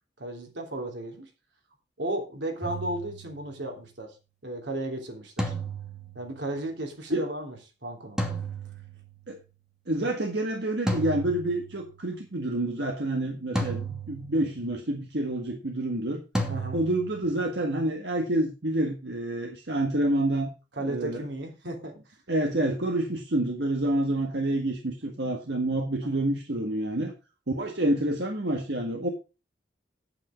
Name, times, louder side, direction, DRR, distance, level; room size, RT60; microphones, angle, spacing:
voice 1, 0.2-1.3 2.0-4.2 4.4-5.5 6.1-8.2 16.5-16.8 20.7-22.2 26.0-26.2, right 1 dB, 90° right, 2 dB, 3.2 m, -35 dB
sound 1, 2.6-3.6 5.4-6.5 8.2-9.3 10.9-12.0 13.5-14.7 16.3-17.2, right 2 dB, 5° right, 2.5 m, -33 dB
voice 2, 9.9-16.2 16.7-20.5 20.8-21.2 22.3-27.1 27.5-29.1, right 1 dB, 70° right, 2 dB, 1.6 m, -28 dB
8.8 x 8.6 x 5.1 m, 0.31 s
head